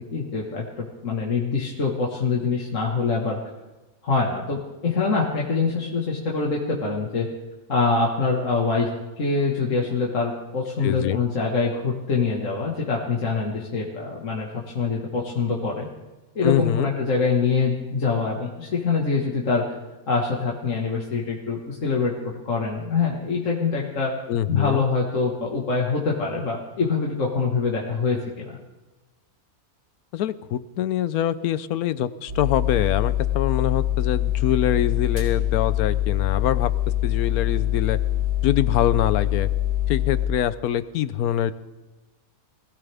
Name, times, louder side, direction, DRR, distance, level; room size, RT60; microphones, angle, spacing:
voice 1, 0.1-3.4 4.0-7.3 7.7-8.9 9.2-15.9 16.4-19.7 20.1-22.1 22.4-24.1 24.5-28.5, left 4 dB, 60° left, -2 dB, 2.1 m, -24 dB
voice 2, 10.8-11.2 16.4-16.9 24.3-24.8 30.1-36.7 37.0-38.0 38.4-39.5 39.9-41.5, left 11 dB, 85° left, 15 dB, 1.2 m, -24 dB
sound 1, 32.3-40.3, left 13 dB, 70° right, 3.5 m, -24 dB
21.0 x 16.0 x 3.5 m, 1.1 s
omnidirectional pair, 1.5 m